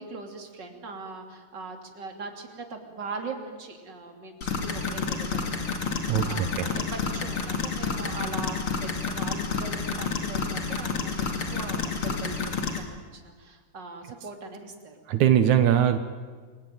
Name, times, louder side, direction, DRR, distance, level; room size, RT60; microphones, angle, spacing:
voice 1, 0.0-15.0, right 3 dB, 35° right, 4 dB, 3.5 m, -40 dB
sound 1, 4.4-12.8, left 5 dB, 45° left, 3.1 m, -30 dB
voice 2, 6.1-6.7 15.1-16.0, right 10 dB, 80° right, 9 dB, 2.5 m, -21 dB
29.5 x 22.0 x 9.3 m, 1.5 s
omnidirectional pair, 3.3 m